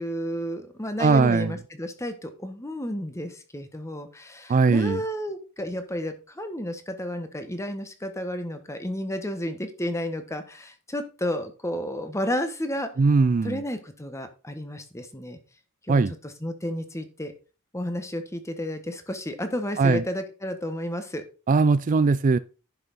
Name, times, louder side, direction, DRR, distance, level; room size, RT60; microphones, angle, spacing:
voice 1, 0.0-12.9 13.4-15.4 15.9-17.3 17.7-21.2, equal, 15° left, 1.3 m, -32 dB
voice 2, 1.0-1.5 4.5-5.0 13.0-13.6 15.9-16.1 19.8-20.0 21.5-22.4, right 4 dB, 40° right, 0.4 m, -20 dB
10.5 x 5.9 x 4.1 m
head